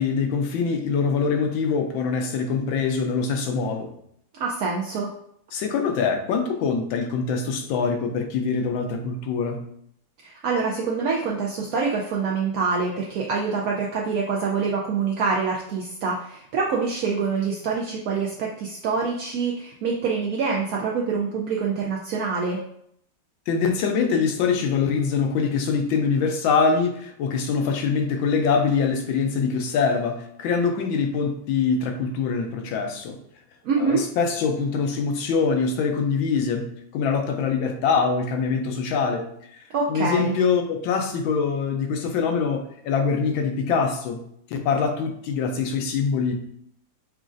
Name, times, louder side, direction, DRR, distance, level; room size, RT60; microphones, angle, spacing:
voice 1, 0.0-3.9 5.5-9.6 23.5-33.2 33.8-39.3 39.9-44.2 44.5-46.3, left 5 dB, 80° left, 4 dB, 1.4 m, -24 dB
voice 2, 4.4-5.1 10.2-22.6 33.6-34.0 39.7-40.3, right 5 dB, 75° right, -3 dB, 0.8 m, -25 dB
6.1 x 2.4 x 2.5 m, 0.69 s
omnidirectional pair, 2.1 m